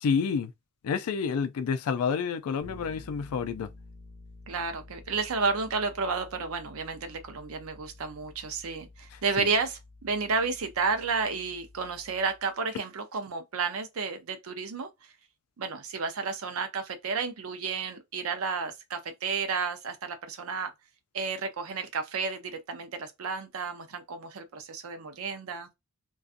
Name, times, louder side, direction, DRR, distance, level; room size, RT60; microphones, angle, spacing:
voice 1, 0.0-0.5 0.8-3.7 9.1-9.5, left 6 dB, 75° left, 0.3 m, -29 dB
Bass guitar, 2.6-12.5, left 2 dB, 50° right, 1.1 m, -51 dB
voice 2, 4.5-14.9 15.6-20.7 21.1-25.7, right 4 dB, 70° right, 0.5 m, -32 dB
2.5 x 2.3 x 2.4 m
head